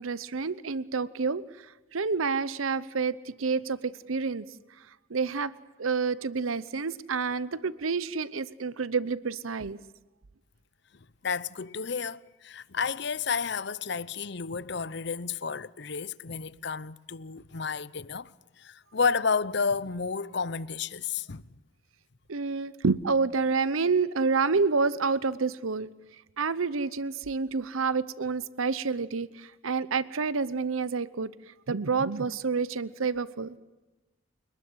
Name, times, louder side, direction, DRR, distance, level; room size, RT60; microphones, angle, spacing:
voice 1, 0.0-1.4 1.9-4.5 5.1-5.5 5.8-9.8 22.3-25.9 26.4-31.3 31.7-33.6, right 4 dB, 90° right, 0.8 m, -28 dB
voice 2, 11.2-18.3 18.6-21.4, left 5 dB, 55° left, 0.8 m, -31 dB
29.5 x 20.0 x 8.0 m
head